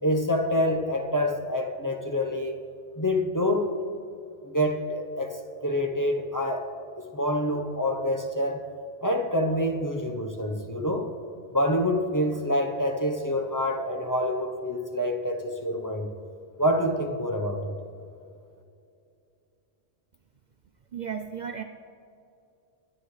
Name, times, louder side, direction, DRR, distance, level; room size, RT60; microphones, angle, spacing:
voice 1, 0.0-2.5 3.0-3.7 4.4-6.7 7.1-8.6 9.0-11.1 11.5-16.1 16.6-17.7, equal, 20° left, 2 dB, 0.9 m, -27 dB
voice 2, 20.9-21.6, right 7 dB, 50° right, 6 dB, 0.6 m, -34 dB
22.0 x 10.5 x 3.3 m, 2.6 s
omnidirectional pair, 1.1 m